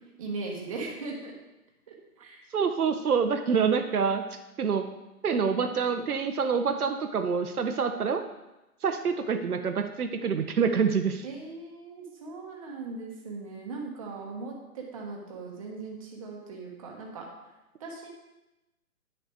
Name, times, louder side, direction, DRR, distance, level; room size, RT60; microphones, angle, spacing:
voice 1, 0.2-1.3 1.9-2.0 2.2-2.5 8.0-8.1 11.2-17.3 17.8-18.1, right 3 dB, 20° right, -1 dB, 1.2 m, -39 dB
voice 2, 2.5-4.2 4.6-4.9 5.2-8.2 8.8-11.3, right 6 dB, 75° right, 7 dB, 0.9 m, -26 dB
10.0 x 6.6 x 3.5 m, 0.98 s
hypercardioid pair, 165°, 45 cm